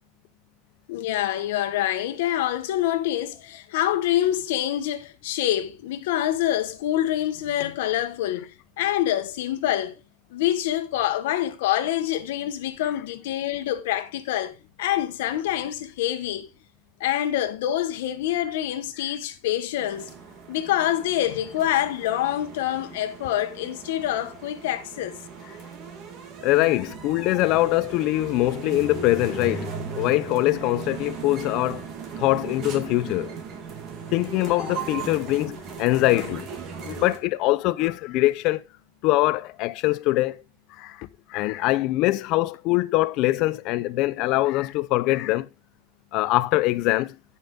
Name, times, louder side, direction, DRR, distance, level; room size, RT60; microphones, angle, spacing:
voice 1, 0.9-8.5 8.8-10.0 10.3-16.5 17.0-20.1 20.5-25.2, left 12 dB, 65° left, 1.4 m, -26 dB
sound 1, 19.8-37.2, right 5 dB, 25° right, 1.6 m, -37 dB
voice 2, 26.4-31.9 32.2-33.3 34.1-36.5 36.8-38.6 39.0-40.4 40.8-45.5 46.1-47.2, left 18 dB, 35° left, 0.5 m, -23 dB
15.0 x 5.5 x 3.7 m
supercardioid pair, 175°, 0 cm